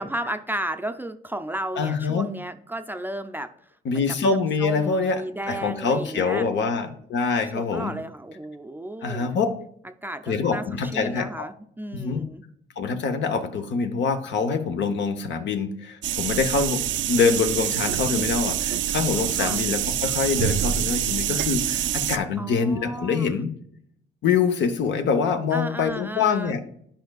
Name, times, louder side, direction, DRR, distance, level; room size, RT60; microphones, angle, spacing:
voice 1, 0.0-3.5 3.9-6.5 7.5-9.3 10.0-12.4 19.4-19.6 22.4-23.4 25.5-26.6, right 1 dB, 10° right, 6 dB, 0.5 m, -34 dB
voice 2, 1.8-2.3 3.8-5.2 5.5-8.0 9.0-9.5 10.3-11.5 11.9-12.2 12.8-23.5 24.2-26.6, left 5 dB, 65° left, 8 dB, 0.9 m, -25 dB
sound 1, 16.0-22.2, right 11 dB, 70° right, 0.4 m, -26 dB
10.5 x 5.2 x 2.3 m, 0.68 s
cardioid pair, 90°, 20 cm